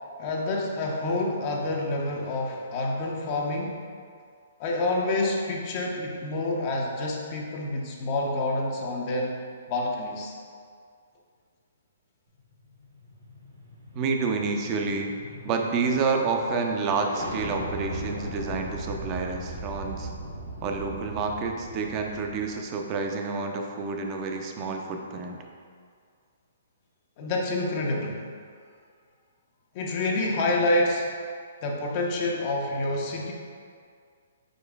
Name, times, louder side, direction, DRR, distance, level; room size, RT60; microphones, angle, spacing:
voice 1, 0.2-3.8 4.6-9.4 9.7-10.3 27.2-28.3 29.7-31.1 31.6-33.3, left 2 dB, 40° left, -1 dB, 0.6 m, -28 dB
sound 1, 12.4-22.6, right 1 dB, 75° right, 1.1 m, -39 dB
voice 2, 13.9-15.1 15.4-20.1 20.6-25.4, right 4 dB, 30° right, 2 dB, 0.5 m, -29 dB
5.1 x 4.4 x 2.4 m, 2.1 s
hypercardioid pair, 150°, 0 cm